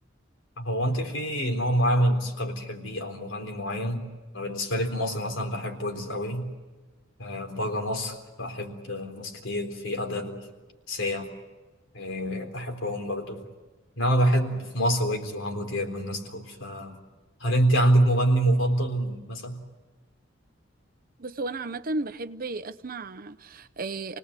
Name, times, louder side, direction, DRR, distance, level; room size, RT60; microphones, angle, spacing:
voice 1, 0.6-4.0 4.3-6.5 7.2-10.5 10.9-11.3 11.9-13.4 14.0-17.0 17.4-19.6, equal, 75° left, 3.9 m, -27 dB
voice 2, 21.2-24.2, right 2 dB, 45° right, 0.9 m, -34 dB
29.0 x 19.0 x 8.3 m
head